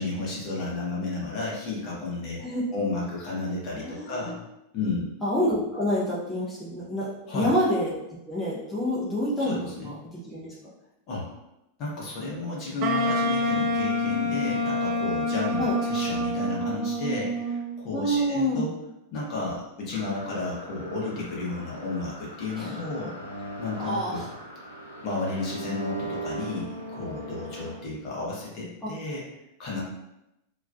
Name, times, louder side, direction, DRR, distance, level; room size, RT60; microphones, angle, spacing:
voice 1, 0.0-2.4 2.7-4.4 4.7-5.1 7.3-7.5 9.4-10.0 11.1-11.3 11.8-18.7 19.1-23.1 23.6-24.3 25.0-29.2 29.6-29.8, left 3 dB, 40° left, -4 dB, 0.8 m, -32 dB
voice 2, 3.7-4.3 5.2-7.9 8.3-10.5 15.6-15.8 17.9-18.6 22.5-22.8 23.8-24.3 28.8-28.9, equal, 10° left, -8 dB, 0.6 m, -28 dB
Wind instrument woodwind instrument, 12.8-17.8, left 1 dB, 40° right, 0.3 m, -27 dB
sound 1, 19.9-27.8, right 2 dB, 90° left, 0.5 m, -40 dB
2.4 x 2.3 x 2.3 m, 0.88 s
figure-of-eight pair, 90°, 0 cm